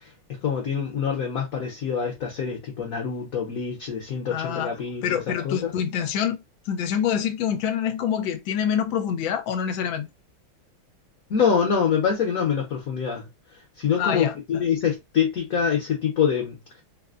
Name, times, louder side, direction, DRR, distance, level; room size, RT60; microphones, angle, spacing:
voice 1, 0.3-5.7 11.3-13.3 13.8-16.6, left 7 dB, 55° left, 1.1 m, -25 dB
voice 2, 4.3-10.1 14.0-14.6, left 8 dB, 80° left, 1.3 m, -26 dB
4.1 x 2.1 x 2.4 m
omnidirectional pair, 2.2 m